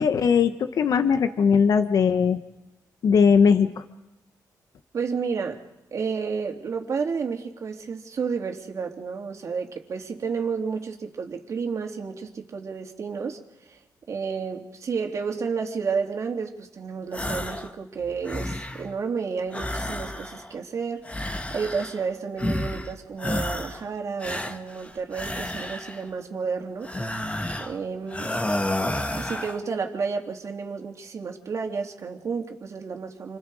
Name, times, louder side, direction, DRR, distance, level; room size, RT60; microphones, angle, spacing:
voice 1, 0.0-2.4 3.0-3.7, left 6 dB, 60° left, 9 dB, 1.2 m, -19 dB
voice 2, 4.9-5.6 5.9-13.4 13.7-13.8 14.1-26.9 27.6-28.4 29.2-33.4, right 5 dB, 50° right, 3 dB, 2.9 m, -31 dB
sound 1, 17.1-17.7 18.0-18.9 19.5-20.6 21.0-22.1 22.4-22.9 23.2-23.8 24.2-26.1 26.8-27.8 28.1-29.6, left 1 dB, 20° left, 2.1 m, -30 dB
29.0 x 26.0 x 4.9 m, 0.94 s
cardioid pair, 100°, 7 cm